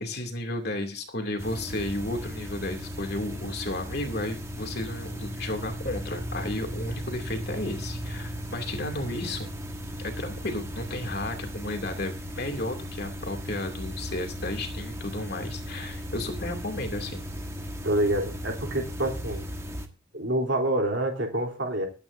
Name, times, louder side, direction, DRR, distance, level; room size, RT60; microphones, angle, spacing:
voice 1, 0.0-9.5 10.0-17.2, left 1 dB, 50° left, 4 dB, 2.6 m, -33 dB
sound 1, 1.4-19.9, equal, 15° right, 1.4 m, -36 dB
voice 2, 17.8-19.4 20.1-21.9, right 1 dB, 60° right, 2 dB, 3.5 m, -27 dB
23.0 x 9.3 x 2.6 m, 0.32 s
head